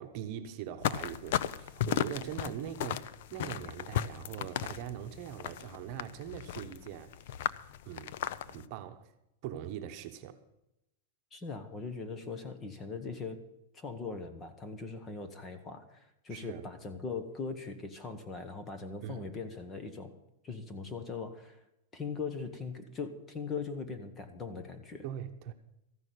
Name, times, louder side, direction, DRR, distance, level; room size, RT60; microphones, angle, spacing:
voice 1, 0.0-7.2 7.8-8.1 8.4-9.1 9.4-10.4 16.3-16.6 19.0-19.3 25.0-25.5, right 10 dB, 45° right, 1.1 m, -42 dB
sound 1, 0.8-8.7, left 11 dB, 60° left, 0.5 m, -36 dB
voice 2, 11.3-13.4 13.7-20.1 20.4-21.6 21.9-25.0, left 4 dB, 15° left, 1.2 m, -40 dB
14.5 x 6.2 x 9.2 m
supercardioid pair, 150°, 0 cm